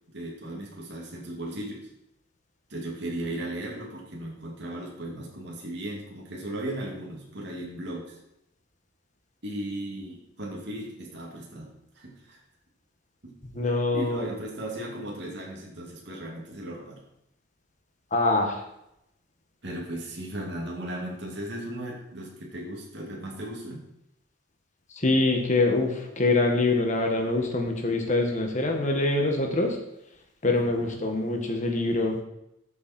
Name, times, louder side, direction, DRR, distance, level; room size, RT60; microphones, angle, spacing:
voice 1, 0.1-1.9 2.7-8.2 9.4-12.4 13.2-13.4 13.9-17.0 19.6-23.8 30.7-31.0, right 1 dB, 60° right, -2 dB, 2.5 m, -36 dB
voice 2, 13.5-14.3 18.1-18.6 25.0-29.8 30.4-32.2, left 2 dB, 40° left, 2 dB, 1.8 m, -24 dB
13.5 x 7.0 x 4.5 m, 0.82 s
head